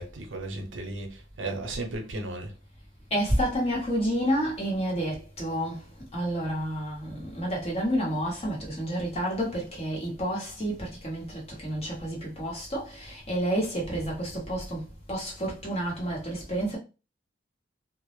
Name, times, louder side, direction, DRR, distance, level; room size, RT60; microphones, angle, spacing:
voice 1, 0.0-2.5 13.9-14.0, right 2 dB, 80° right, 0.6 m, -35 dB
voice 2, 3.1-5.8 6.1-16.8, equal, 35° left, 0.9 m, -30 dB
2.1 x 2.0 x 3.0 m
head